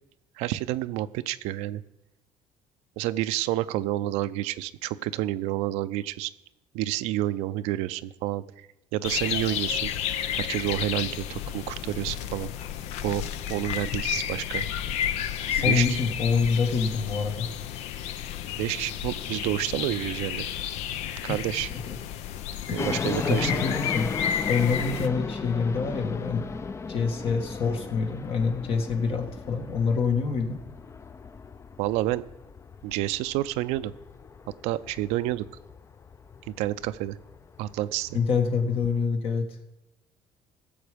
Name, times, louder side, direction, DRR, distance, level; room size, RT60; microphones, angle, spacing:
voice 1, 0.4-1.8 3.0-6.3 6.7-8.7 8.9-9.9 10.3-12.5 13.0-14.7 15.7-16.0 18.6-20.5 21.2-21.7 22.7-23.6 31.8-32.2 32.8-33.9 34.6-35.5 36.6-37.2 37.6-38.2, right 15 dB, 85° right, 13 dB, 0.5 m, -29 dB
sound 1, 9.0-25.1, left 10 dB, 80° left, 0.6 m, -31 dB
voice 2, 15.5-17.5 21.3-21.4 21.9-22.0 22.7-22.9 23.3-24.1 24.5-26.5 26.9-30.6 38.1-39.6, left 5 dB, 60° left, 4 dB, 1.7 m, -26 dB
sound 2, 22.8-39.0, left 5 dB, 25° left, 0.5 m, -36 dB
16.5 x 7.1 x 5.1 m, 0.98 s
cardioid pair, 100°, 11 cm